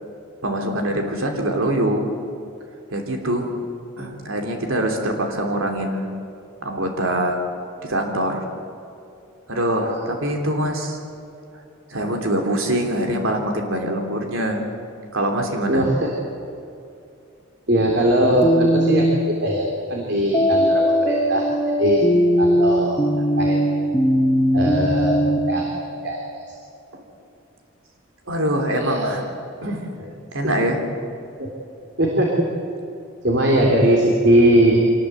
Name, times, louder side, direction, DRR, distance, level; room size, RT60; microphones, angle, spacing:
voice 1, 0.4-2.1 2.9-3.5 4.0-6.1 6.6-7.4 7.8-8.5 9.5-11.0 11.9-14.6 15.1-15.9 28.3-29.2 29.6-29.9 30.3-30.8, right 1 dB, 85° right, 3 dB, 3.2 m, -23 dB
voice 2, 15.7-16.1 17.7-21.5 21.8-22.1 22.4-23.0 23.4-23.6 24.5-26.4 28.7-29.1 30.0-30.1 30.4-30.5 31.4-31.5 32.0-32.4 33.2-34.8, right 1 dB, 55° right, -1 dB, 3.4 m, -20 dB
sound 1, 18.4-19.2 20.3-25.4, equal, 15° left, 1.8 m, -19 dB
25.0 x 20.0 x 8.0 m, 2.7 s
head